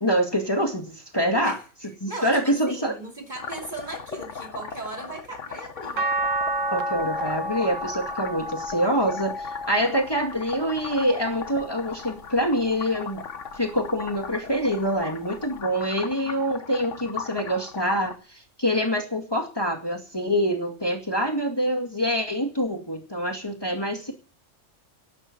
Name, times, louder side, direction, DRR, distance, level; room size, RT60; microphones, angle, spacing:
voice 1, 0.0-1.6 2.0-3.0 6.7-13.2 13.5-24.1, equal, 20° left, 2.2 m, -25 dB
voice 2, 2.1-6.1, right 2 dB, 35° right, 2.9 m, -37 dB
sound 1, 3.4-18.2, left 6 dB, 65° left, 1.5 m, -38 dB
sound 2, 6.0-12.3 12.8-14.2 15.6-15.7, right 1 dB, 75° right, 1.7 m, -32 dB
12.0 x 11.5 x 8.4 m
omnidirectional pair, 1.3 m